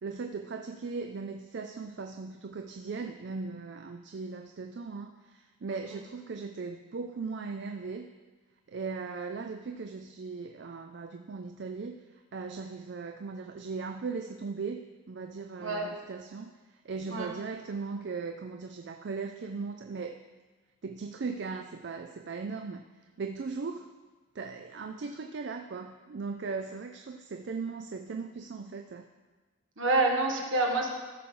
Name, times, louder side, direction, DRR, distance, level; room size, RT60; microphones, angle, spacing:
voice 1, 0.0-8.1 8.7-20.2 20.8-22.9 23.2-23.9 24.3-29.1, right 4 dB, 60° right, 6 dB, 0.4 m, -38 dB
voice 2, 15.6-15.9 17.1-17.3 29.8-30.9, right 2 dB, 75° right, 1 dB, 1.5 m, -27 dB
14.0 x 5.9 x 3.8 m, 1.3 s
head